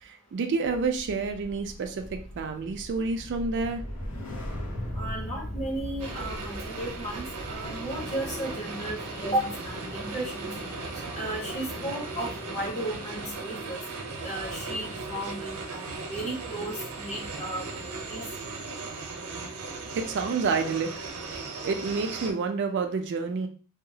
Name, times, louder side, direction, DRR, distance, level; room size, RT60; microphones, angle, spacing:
voice 1, 0.0-3.8 19.9-21.0 21.2-23.5, right 4 dB, 55° right, 5 dB, 0.4 m, -29 dB
sound 1, 0.6-11.0 11.4-11.7, equal, 80° left, 0.9 m, -39 dB
voice 2, 4.9-10.5 11.2-13.8 14.2-18.3, right 1 dB, 35° left, -2 dB, 1.1 m, -34 dB
sound 2, 6.0-22.3, right 3 dB, 90° right, 0.7 m, -37 dB
sound 3, 7.8-13.3, left 1 dB, 15° left, 0.6 m, -44 dB
2.8 x 2.3 x 2.7 m, 0.39 s
head